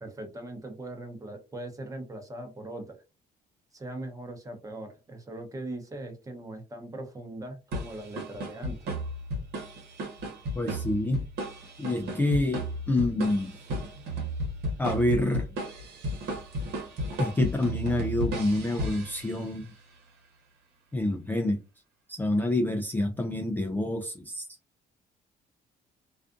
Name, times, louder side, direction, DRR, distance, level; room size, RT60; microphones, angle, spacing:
voice 1, 0.0-3.0 3.7-8.8, right 1 dB, 20° right, 0.8 m, -40 dB
sound 1, 7.7-19.7, equal, 75° right, 1.0 m, -34 dB
voice 2, 10.5-11.2 11.8-13.6 14.8-15.5 17.2-19.7 20.9-21.6 22.1-24.4, left 1 dB, 10° left, 0.3 m, -27 dB
2.4 x 2.4 x 2.5 m
cardioid pair, 110°, 17 cm